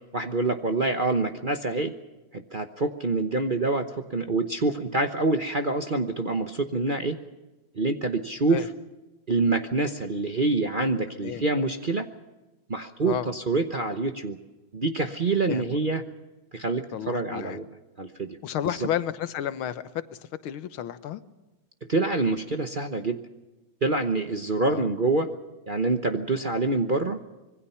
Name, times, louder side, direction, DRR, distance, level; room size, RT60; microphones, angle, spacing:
voice 1, 0.1-1.9 2.3-7.2 7.7-8.6 9.3-12.1 12.7-14.4 14.7-16.0 16.5-17.7 18.0-18.3 18.6-18.8 21.9-23.2 23.8-25.3 25.7-27.2, right 3 dB, 35° right, 5 dB, 0.8 m, -26 dB
voice 2, 15.5-15.8 16.9-17.6 18.4-21.2 24.6-24.9, left 10 dB, 90° left, 12 dB, 1.8 m, -32 dB
25.5 x 22.0 x 5.7 m, 1.1 s
omnidirectional pair, 2.2 m